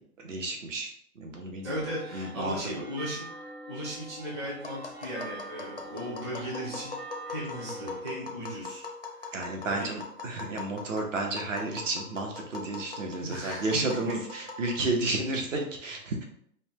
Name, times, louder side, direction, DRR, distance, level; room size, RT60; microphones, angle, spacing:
voice 1, 0.2-1.8 2.1-2.6 9.3-16.2, right 2 dB, 50° right, 2 dB, 0.8 m, -32 dB
voice 2, 1.6-3.3 3.7-6.9 7.3-8.9 9.2-9.3 9.7-9.9 10.3-10.4 13.2-14.2, equal, 20° right, -8 dB, 0.6 m, -36 dB
sound 1, 1.6-8.0, right 3 dB, 80° right, 1.2 m, -44 dB
Tap, 4.6-15.1, left 3 dB, 40° left, 0.4 m, -41 dB
5.3 x 2.2 x 2.9 m, 0.65 s
hypercardioid pair, 170°, 47 cm